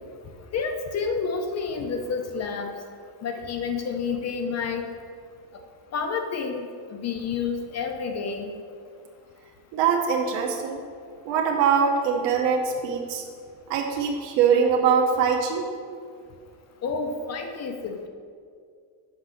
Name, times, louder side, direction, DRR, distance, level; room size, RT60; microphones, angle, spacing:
voice 1, 0.5-2.7 3.2-4.8 5.9-8.5 16.8-18.1, left 5 dB, 40° left, 5 dB, 0.6 m, -29 dB
voice 2, 9.7-10.8 11.2-13.3 13.7-15.7, right 6 dB, 75° right, 1 dB, 1.0 m, -23 dB
6.0 x 5.4 x 6.3 m, 2.2 s
cardioid pair, 155°, 43 cm